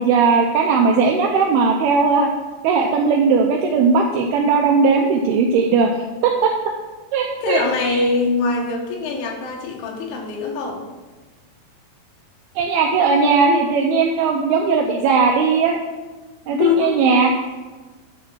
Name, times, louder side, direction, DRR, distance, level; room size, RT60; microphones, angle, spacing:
voice 1, 0.0-2.3 2.6-5.9 6.2-6.5 7.1-8.0 12.6-15.8 16.5-17.3, right 5 dB, 80° right, 1 dB, 2.3 m, -17 dB
voice 2, 7.4-10.9 16.5-17.0, left 4 dB, 70° left, 0 dB, 3.2 m, -22 dB
11.0 x 4.3 x 6.2 m, 1.3 s
omnidirectional pair, 5.1 m